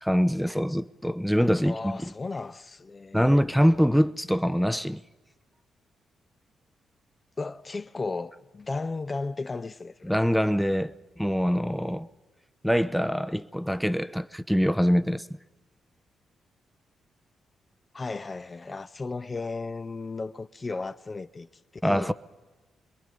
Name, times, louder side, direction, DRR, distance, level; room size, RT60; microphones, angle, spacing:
voice 1, 0.0-1.9 3.1-5.0 10.1-12.1 12.6-15.3 21.8-22.1, equal, ahead, 0.8 m, -24 dB
voice 2, 1.6-3.4 7.4-10.1 17.9-21.5 21.8-22.1, left 3 dB, 35° left, 0.7 m, -35 dB
25.0 x 21.5 x 5.3 m
hypercardioid pair, 45°, 0 cm